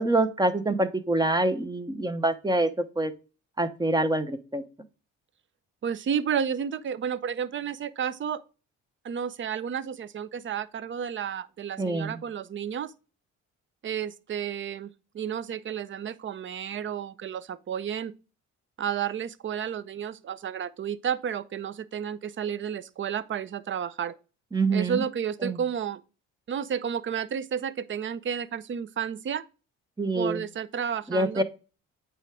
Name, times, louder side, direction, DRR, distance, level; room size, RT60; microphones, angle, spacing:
voice 1, 0.0-2.7 3.0-3.1 3.6-4.6 11.8-12.2 24.5-25.0 25.4-25.6 30.0-30.4 31.1-31.4, right 2 dB, 15° right, 0.9 m, -25 dB
voice 2, 5.8-8.4 9.0-12.9 13.8-14.9 15.1-18.1 18.8-24.2 24.7-26.0 26.5-29.5 30.1-31.4, right 8 dB, 40° right, 0.6 m, -31 dB
8.7 x 3.5 x 4.8 m
cardioid pair, 90°, 30 cm